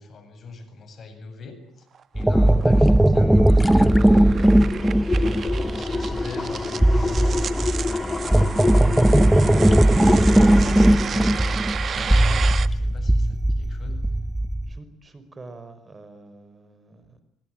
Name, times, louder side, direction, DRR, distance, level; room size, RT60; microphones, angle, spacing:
voice 1, 0.0-1.9 2.1-4.6 5.2-9.3 9.9-14.1, left 4 dB, 45° left, 9 dB, 7.6 m, -40 dB
sound 1, 1.9-12.7, right 7 dB, 45° right, 1.5 m, -33 dB
sound 2, 2.1-14.8, right 1 dB, 5° right, 1.1 m, -18 dB
voice 2, 2.5-2.8 14.7-17.2, right 3 dB, 25° right, 11 dB, 4.9 m, -44 dB
sound 3, 2.9-3.0 3.3-12.4 12.7-12.8, left 3 dB, 20° left, 2.2 m, -29 dB
26.0 x 24.5 x 9.0 m, 0.70 s
supercardioid pair, 80°, 0 cm